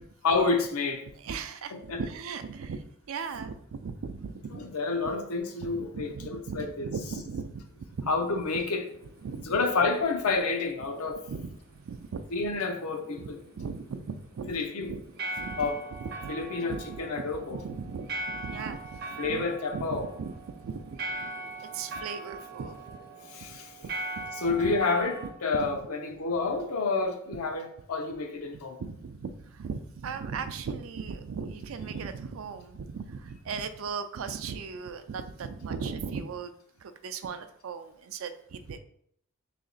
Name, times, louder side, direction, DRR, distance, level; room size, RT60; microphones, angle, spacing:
voice 1, 0.2-1.0 1.7-2.0 4.6-6.9 8.1-8.9 9.4-11.2 12.3-13.4 14.5-14.9 15.6-15.8 16.3-17.6 19.2-20.1 23.3-23.7 24.4-28.8, left 4 dB, 85° left, 0.6 m, -29 dB
voice 2, 1.2-4.7 5.0-5.1 5.6-8.1 9.2-9.6 11.3-12.2 13.2-14.5 14.8-15.0 15.4-15.7 16.0-16.3 16.7-19.5 19.7-21.3 21.7-23.0 23.5-23.6 24.2-24.8 25.6-25.8 28.8-36.5 36.8-38.8, right 5 dB, 65° right, 0.4 m, -38 dB
sound 1, 7.6-25.3, right 2 dB, 45° right, 0.7 m, -42 dB
3.2 x 2.8 x 4.0 m
head